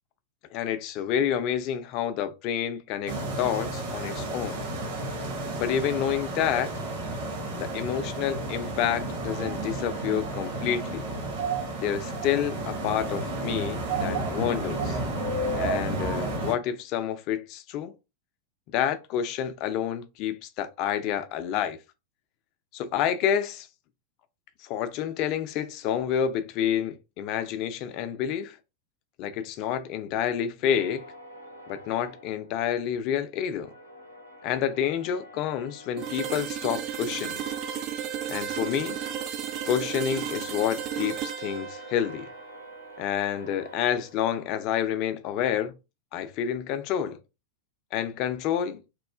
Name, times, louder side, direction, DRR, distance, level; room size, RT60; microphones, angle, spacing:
voice 1, 0.5-4.6 5.5-6.7 7.6-11.1 11.8-15.0 15.6-17.9 18.7-21.8 22.7-23.7 24.6-28.6 29.2-31.1 31.7-33.7 34.4-37.4 38.3-39.0 39.6-42.3 43.0-45.7 46.1-47.2 47.9-48.8, left 9 dB, 40° left, 0.4 m, -29 dB
sound 1, 3.1-16.5, right 2 dB, 55° right, 0.8 m, -31 dB
sound 2, 30.6-33.1 33.5-44.7, right 1 dB, 85° left, 0.6 m, -48 dB
sound 3, 36.0-43.8, right 9 dB, 35° right, 0.3 m, -34 dB
3.0 x 2.3 x 2.3 m
figure-of-eight pair, 90°, 0 cm